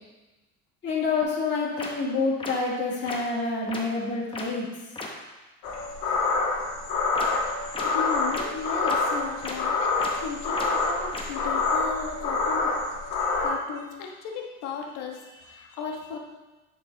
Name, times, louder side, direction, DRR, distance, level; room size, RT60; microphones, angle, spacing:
voice 1, 0.8-4.6, left 4 dB, 35° left, -7 dB, 1.9 m, -27 dB
sound 1, 1.2-1.3 1.8-1.9 2.4-2.5 3.1-3.2 3.7-3.8 4.3-4.4 5.0-5.1 7.1-7.3 7.7-7.8 8.3-8.4 8.9-9.0 9.4-9.5 10.0-10.1 10.5-10.7 11.1-11.2, left 3 dB, 15° left, 0.8 m, -34 dB
sound 2, 5.6-13.5, left 3 dB, 65° left, 1.8 m, -27 dB
voice 2, 7.8-12.7 13.2-16.2, left 6 dB, 85° left, 1 dB, 1.3 m, -36 dB
8.8 x 4.7 x 3.9 m, 1.1 s
cardioid pair, 150°, 33 cm